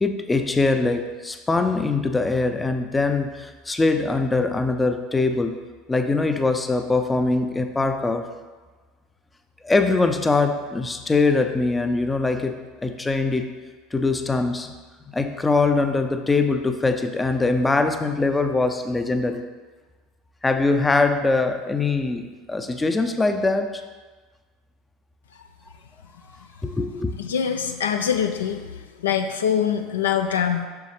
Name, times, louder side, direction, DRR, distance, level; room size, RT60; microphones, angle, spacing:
voice 1, 0.0-5.5 5.9-8.3 9.6-12.6 12.8-13.5 13.9-14.7 15.1-19.4 20.4-23.8 26.6-27.1, left 3 dB, 15° left, 7 dB, 0.5 m, -22 dB
voice 2, 27.2-30.7, left 8 dB, 75° left, 6 dB, 0.4 m, -24 dB
6.9 x 6.2 x 3.1 m, 1.3 s
figure-of-eight pair, 75°, 0 cm